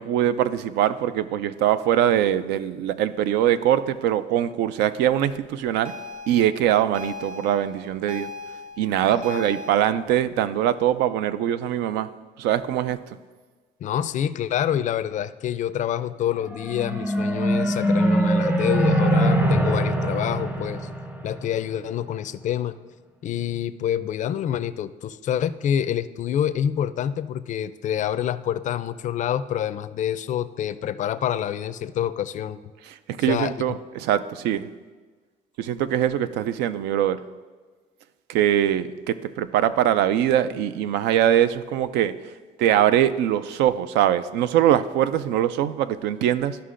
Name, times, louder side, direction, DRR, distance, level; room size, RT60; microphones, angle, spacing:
voice 1, 0.0-5.9 6.3-8.3 8.8-12.1 12.4-13.2 33.1-34.7 35.6-37.2 38.3-42.1 42.6-46.6, right 11 dB, 90° right, 13 dB, 0.4 m, -22 dB
sound 1, 5.8-9.7, left 3 dB, 35° right, 1.0 m, -38 dB
voice 2, 9.1-9.6 9.8-10.1 13.8-20.8 21.2-22.8 23.2-32.6 33.3-33.5, left 10 dB, 45° left, 14 dB, 0.4 m, -27 dB
sound 2, 16.3-21.9, right 1 dB, 10° right, 0.6 m, -23 dB
13.0 x 5.6 x 2.5 m, 1.4 s
cardioid pair, 110°, 17 cm